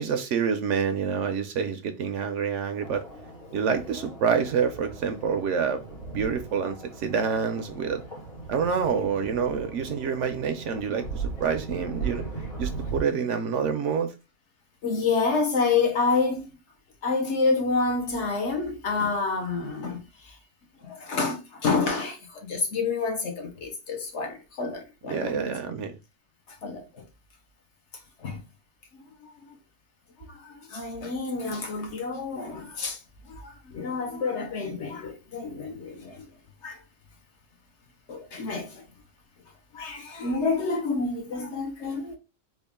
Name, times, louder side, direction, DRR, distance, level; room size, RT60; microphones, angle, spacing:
voice 1, 0.0-3.0 3.5-5.8 6.1-8.0 8.5-12.2 12.6-14.1 25.1-26.0, right 6 dB, 70° right, 0.8 m, -27 dB
sound 1, 2.8-13.0, right 4 dB, 90° left, 2.0 m, -38 dB
voice 2, 14.8-16.5 17.0-20.4 20.8-25.4 26.5-27.0 28.2-28.4 28.9-29.6 30.3-36.3 36.6-36.8 38.1-38.8 39.7-42.2, left 4 dB, 60° left, 1.1 m, -28 dB
3.7 x 2.3 x 3.5 m
omnidirectional pair, 1.4 m